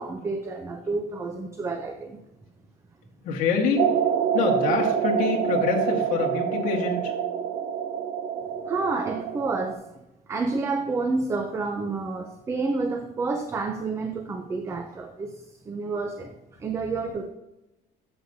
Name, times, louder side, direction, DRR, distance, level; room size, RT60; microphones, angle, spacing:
voice 1, 0.0-2.2 8.7-9.8 10.3-16.3 16.6-17.3, right 3 dB, 15° right, 6 dB, 0.5 m, -29 dB
voice 2, 3.2-3.8 4.3-7.1, left 5 dB, 50° left, -1 dB, 1.6 m, -25 dB
sound 1, 3.8-9.7, right 8 dB, 60° right, 0.6 m, -26 dB
12.5 x 7.8 x 2.7 m, 0.93 s
cardioid pair, 180°, 17 cm